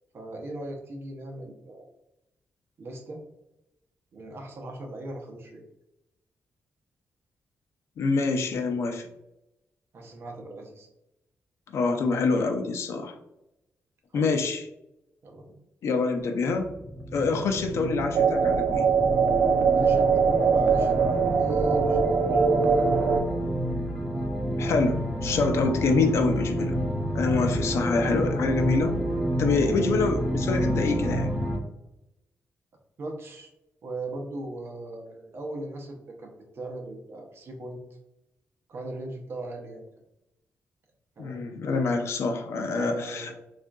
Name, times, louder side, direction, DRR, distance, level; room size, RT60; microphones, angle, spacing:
voice 1, 0.1-1.9 2.8-3.2 4.1-5.6 9.9-10.9 14.1-14.3 15.2-15.6 19.6-22.4 33.0-33.5 33.8-37.8 38.7-39.9 41.2-41.4 42.7-43.4, right 1 dB, 50° right, 1 dB, 0.7 m, -38 dB
voice 2, 8.0-9.1 11.7-13.2 14.1-14.6 15.8-16.7 17.1-18.9 24.6-26.8 27.1-29.0 29.4-31.3 41.2-43.3, left 4 dB, 65° left, 5 dB, 0.4 m, -26 dB
sound 1, 16.6-31.6, equal, ahead, 0.7 m, -29 dB
sound 2, 18.1-23.2, right 5 dB, 85° right, 0.3 m, -22 dB
3.5 x 2.4 x 2.2 m, 0.89 s
cardioid pair, 130°, 5 cm